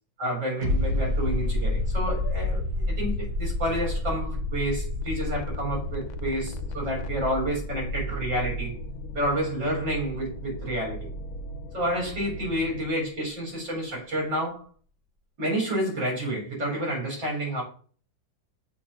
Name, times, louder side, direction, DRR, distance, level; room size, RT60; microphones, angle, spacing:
voice 1, 0.2-8.7 9.1-11.0 11.7-14.6 15.4-17.6, equal, 70° right, -3 dB, 4.4 m, -29 dB
sound 1, 0.6-11.9 12.2-12.3, left 1 dB, 35° right, 0.8 m, -30 dB
sound 2, 5.0-12.9, right 2 dB, 90° left, 1.4 m, -38 dB
7.2 x 2.7 x 5.5 m, 0.43 s
omnidirectional pair, 2.1 m